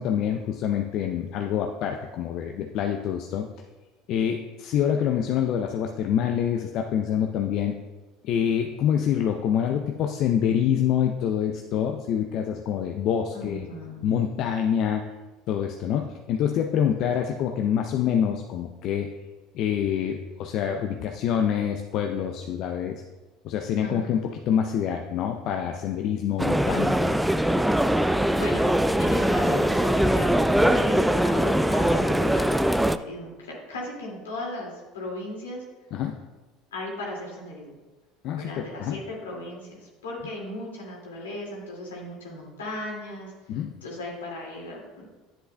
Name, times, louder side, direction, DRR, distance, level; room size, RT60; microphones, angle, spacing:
voice 1, 0.0-3.5 4.1-7.8 8.2-13.7 14.0-15.0 15.5-19.1 19.5-23.0 23.4-27.2 30.6-30.7 35.9-36.1 38.2-39.0 43.5-43.7, left 9 dB, 55° left, 4 dB, 0.5 m, -26 dB
voice 2, 13.3-14.0 23.8-24.2 28.3-28.7 29.0-35.6 36.7-37.7 38.3-43.3 43.8-45.1, left 1 dB, 80° left, -2 dB, 2.2 m, -36 dB
sound 1, 26.4-33.0, right 1 dB, 5° right, 0.3 m, -22 dB
10.0 x 7.8 x 2.3 m, 1.2 s
hypercardioid pair, 70°, 0 cm